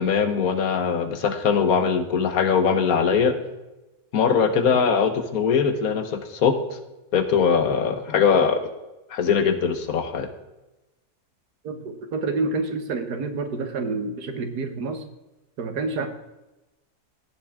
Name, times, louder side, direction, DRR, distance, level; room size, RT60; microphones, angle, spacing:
voice 1, 0.0-3.3 4.1-6.6 7.1-8.7 9.1-10.3, left 6 dB, 65° left, 9 dB, 1.5 m, -21 dB
voice 2, 11.6-15.0 15.6-16.1, right 3 dB, 90° right, 7 dB, 1.8 m, -28 dB
16.5 x 7.4 x 3.6 m, 1.0 s
omnidirectional pair, 1.7 m